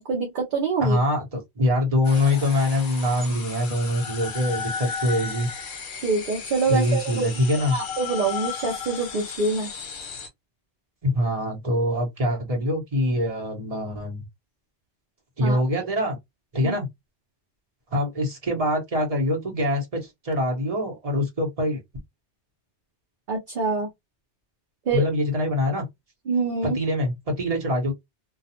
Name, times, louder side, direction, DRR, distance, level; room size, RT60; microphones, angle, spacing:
voice 1, 0.0-1.0 6.0-7.3 7.7-9.7 15.4-15.6 16.6-16.8 23.3-23.9 24.9-25.0 26.3-26.8, right 4 dB, 55° right, 0.7 m, -25 dB
voice 2, 0.8-5.5 6.7-7.8 11.0-14.2 15.4-16.2 16.5-16.9 17.9-21.8 24.9-25.8 26.6-27.9, left 1 dB, 35° right, 1.0 m, -24 dB
sound 1, 2.0-10.3, left 6 dB, 50° left, 0.8 m, -35 dB
2.3 x 2.3 x 2.8 m
omnidirectional pair, 1.2 m